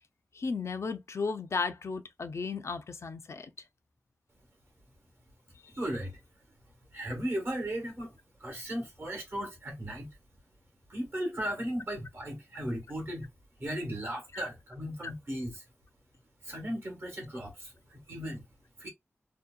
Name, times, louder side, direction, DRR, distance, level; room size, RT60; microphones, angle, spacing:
voice 1, 0.3-3.5 5.6-5.7, left 4 dB, 65° left, 0.4 m, -34 dB
voice 2, 5.8-6.2 6.9-10.1 10.9-13.3 13.6-15.6 16.4-18.4 18.8-18.9, equal, 50° right, 1.1 m, -36 dB
2.7 x 2.1 x 2.2 m
wide cardioid pair, 100°, 5 cm